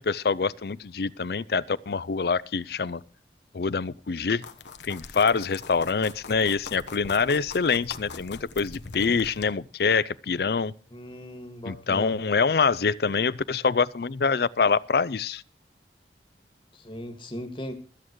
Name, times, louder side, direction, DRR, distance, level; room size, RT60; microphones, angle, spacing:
voice 1, 0.0-3.0 3.5-4.4 4.8-10.7 11.7-15.4, left 5 dB, 60° left, 0.5 m, -25 dB
sound 1, 4.4-9.5, left 4 dB, 90° left, 1.2 m, -42 dB
voice 2, 10.9-12.2 16.7-17.7, left 1 dB, 30° left, 1.9 m, -38 dB
24.0 x 8.7 x 3.1 m
head